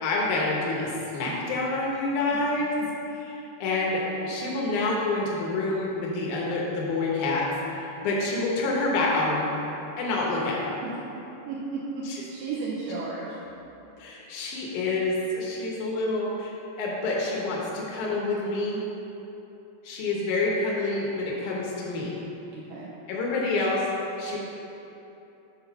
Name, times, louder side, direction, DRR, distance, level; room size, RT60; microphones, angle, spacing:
voice 1, 0.0-2.7 3.6-7.5 7.7-9.5 10.0-10.7 12.1-12.2 14.0-16.5 16.8-18.8 19.8-22.1 23.1-23.8 24.2-24.4, left 2 dB, 75° left, -3 dB, 1.9 m, -27 dB
voice 2, 11.5-13.4 22.5-22.9, right 4 dB, 80° right, -5 dB, 2.3 m, -34 dB
7.8 x 4.2 x 5.8 m, 3.0 s
omnidirectional pair, 5.0 m